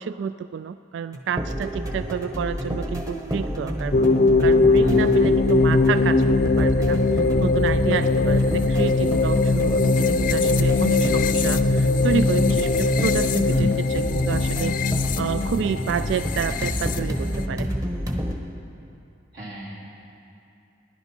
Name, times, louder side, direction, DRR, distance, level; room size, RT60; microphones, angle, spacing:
voice 1, 0.0-14.8 15.2-17.7, right 6 dB, 85° right, 12 dB, 0.3 m, -29 dB
sound 1, 1.1-18.3, equal, 20° right, 1.2 m, -29 dB
sound 2, 3.9-17.5, left 3 dB, 50° left, 0.5 m, -21 dB
voice 2, 19.3-19.7, equal, 70° right, -6 dB, 3.5 m, -31 dB
19.5 x 11.0 x 4.5 m, 2.7 s
head